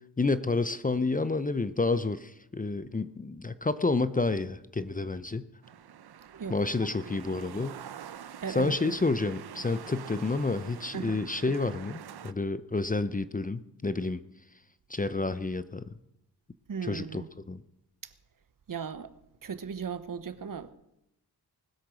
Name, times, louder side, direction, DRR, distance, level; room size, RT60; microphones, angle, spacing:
voice 1, 0.2-5.5 6.5-7.8 8.5-14.2 14.9-15.9 16.8-17.6, left 3 dB, 20° left, 0.6 m, -29 dB
sound 1, 5.6-12.3, right 9 dB, 70° right, 0.8 m, -45 dB
voice 2, 8.4-9.0 10.9-11.2 16.7-17.3 18.0-18.1 18.7-19.1 19.4-20.7, right 6 dB, 55° right, 1.0 m, -37 dB
20.0 x 8.0 x 6.2 m
cardioid pair, 65°, 40 cm